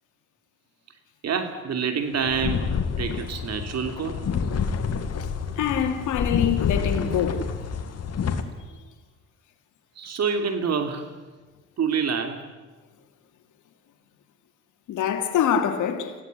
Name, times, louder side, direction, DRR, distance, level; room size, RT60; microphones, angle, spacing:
voice 1, 1.2-4.2 9.9-11.1 11.8-12.5, right 6 dB, 60° right, 3.4 m, -27 dB
sound 1, 2.1-8.4, left 6 dB, 55° left, 2.5 m, -28 dB
voice 2, 5.6-7.5 14.9-16.2, left 8 dB, 80° left, 2.9 m, -25 dB
26.5 x 16.5 x 9.9 m
cardioid pair, 90°, 30 cm